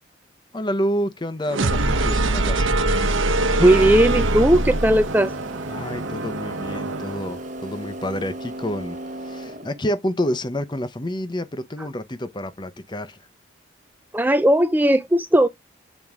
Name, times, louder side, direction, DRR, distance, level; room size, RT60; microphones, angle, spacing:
voice 1, 0.5-2.7 5.7-13.2, equal, 25° left, 0.7 m, -28 dB
sound 1, 1.5-7.3, right 2 dB, 85° right, 1.1 m, -23 dB
voice 2, 3.6-5.3 14.1-15.5, right 1 dB, 10° right, 0.4 m, -17 dB
sound 2, 3.6-10.0, right 1 dB, 40° right, 1.1 m, -35 dB
7.3 x 4.6 x 3.6 m
head